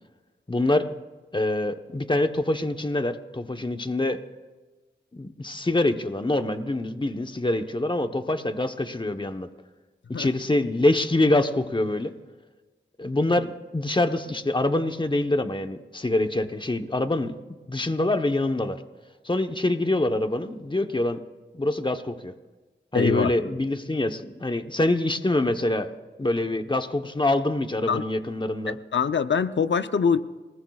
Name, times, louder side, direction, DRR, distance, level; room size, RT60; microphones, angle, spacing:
voice 1, 0.5-0.9 1.3-4.2 5.1-9.5 10.1-12.1 13.0-17.3 17.7-18.8 19.2-21.2 21.5-22.3 22.9-25.9 26.2-28.8, left 2 dB, 25° left, 1.0 m, -25 dB
voice 2, 22.9-23.3 27.9-28.0 28.9-30.2, left 6 dB, 75° left, 0.7 m, -23 dB
27.0 x 19.0 x 2.4 m
cardioid pair, 45°, 19 cm